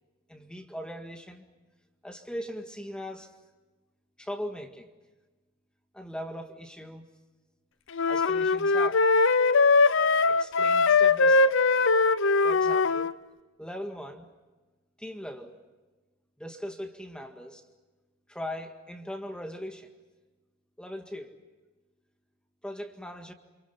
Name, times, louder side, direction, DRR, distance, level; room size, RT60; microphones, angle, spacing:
voice 1, 0.3-1.4 2.0-3.3 4.2-4.9 5.9-7.1 8.1-9.0 10.3-11.6 12.4-13.1 13.6-14.3 15.0-15.6 16.4-17.6 18.3-19.9 20.8-21.4 22.6-23.3, equal, 5° left, 4 dB, 1.9 m, -39 dB
sound 1, 7.9-13.1, left 4 dB, 65° left, 0.8 m, -21 dB
29.0 x 27.5 x 5.7 m, 1.2 s
head